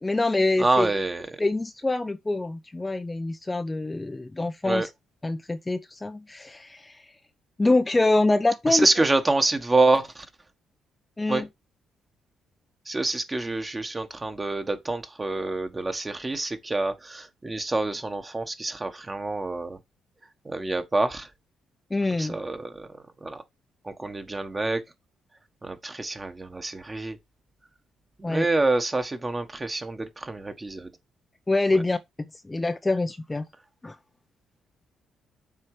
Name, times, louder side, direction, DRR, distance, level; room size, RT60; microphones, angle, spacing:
voice 1, 0.0-0.9 1.4-4.9 5.2-7.0 7.6-8.9 11.2-11.5 21.9-22.4 28.2-28.5 31.5-33.4 33.8-34.0, left 2 dB, 15° left, 0.7 m, -25 dB
voice 2, 0.6-1.3 4.6-4.9 8.7-10.3 11.3-11.4 12.9-19.8 20.4-21.3 22.2-22.9 23.2-23.4 23.8-24.8 25.6-27.2 28.2-30.9 31.7-31.8, right 2 dB, 20° right, 1.4 m, -27 dB
7.4 x 4.5 x 4.9 m
cardioid pair, 90°, 0 cm